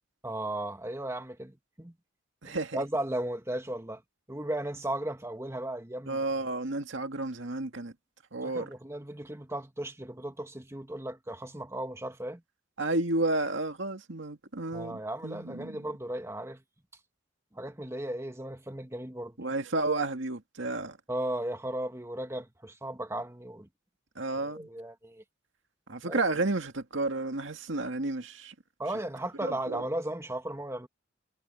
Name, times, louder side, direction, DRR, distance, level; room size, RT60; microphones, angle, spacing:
voice 1, 0.2-1.9 2.4-4.0 4.3-6.2 8.4-12.4 14.7-16.6 17.5-19.4 21.1-23.7 24.4-25.2 26.0-26.2 28.8-30.9, right 1 dB, 15° right, 1.7 m, -36 dB
voice 2, 2.4-2.8 6.1-7.9 8.3-8.7 12.8-15.7 19.4-21.0 24.2-24.7 25.9-28.5 29.4-29.8, right 2 dB, 75° right, 2.1 m, -31 dB
head